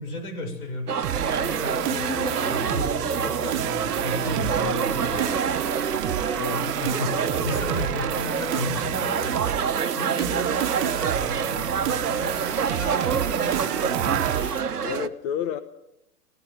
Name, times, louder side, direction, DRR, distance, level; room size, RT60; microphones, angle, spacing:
voice 1, 0.0-5.5 6.3-9.5 10.0-14.3, left 2 dB, 70° left, 7 dB, 7.4 m, -34 dB
sound 1, 0.9-15.1, right 7 dB, 85° right, 1.3 m, -27 dB
sound 2, 1.0-14.6, right 13 dB, 50° right, 1.5 m, -30 dB
sound 3, 1.1-14.6, equal, 5° left, 2.0 m, -39 dB
voice 2, 6.4-6.7 14.8-15.6, left 9 dB, 35° left, 12 dB, 1.2 m, -31 dB
28.5 x 16.5 x 7.8 m, 0.84 s
hypercardioid pair, 115°, 45 cm